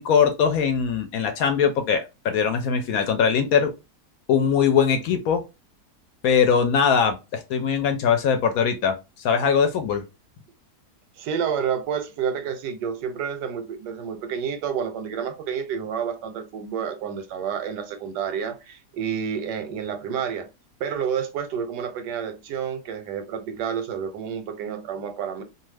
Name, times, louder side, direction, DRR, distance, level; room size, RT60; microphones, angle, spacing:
voice 1, 0.0-3.7 4.3-5.4 6.2-10.1, left 7 dB, 70° left, 0.9 m, -21 dB
voice 2, 11.2-20.5 20.8-25.4, right 7 dB, 90° right, 1.2 m, -29 dB
2.6 x 2.4 x 3.1 m
omnidirectional pair, 1.8 m